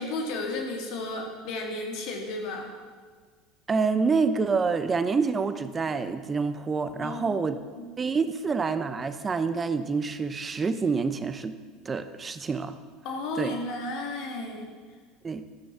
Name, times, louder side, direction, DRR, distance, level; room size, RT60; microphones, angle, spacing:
voice 1, 0.0-2.7 7.0-7.9 13.0-14.7, left 2 dB, 55° left, 1 dB, 3.4 m, -33 dB
voice 2, 3.7-7.6 8.0-11.6 11.8-12.8 13.4-13.5 15.2-15.4, right 4 dB, 25° right, 11 dB, 1.0 m, -27 dB
14.0 x 13.0 x 7.4 m, 1.5 s
figure-of-eight pair, 70°, 0 cm